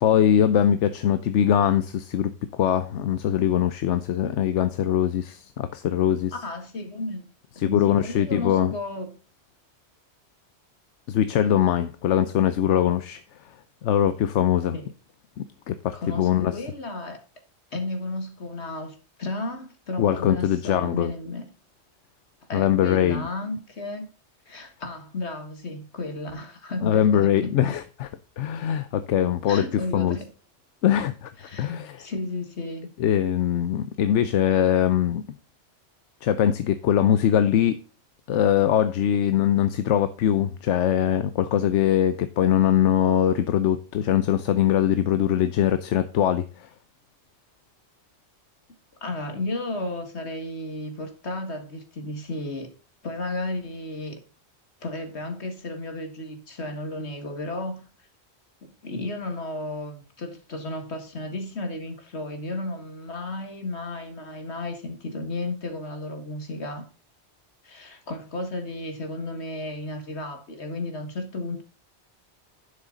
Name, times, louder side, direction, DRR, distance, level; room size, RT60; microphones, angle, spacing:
voice 1, 0.0-6.3 7.6-8.7 11.1-13.2 13.8-14.8 15.4-16.5 20.0-21.1 22.5-23.2 26.8-28.1 28.4-29.7 29.9-30.2 30.8-31.3 31.6-32.0 33.0-35.2 36.2-37.8 38.3-46.7, left 10 dB, 85° left, 1.0 m, -22 dB
voice 2, 6.3-7.3 7.6-9.2 14.7-14.9 15.9-17.2 17.7-21.5 22.5-24.1 24.5-27.7 29.5-30.3 31.4-32.9 49.0-52.7 53.0-54.2 54.8-57.8 58.6-66.9 67.6-71.6, left 2 dB, 70° left, 2.2 m, -33 dB
11.5 x 6.5 x 3.9 m
omnidirectional pair, 1.2 m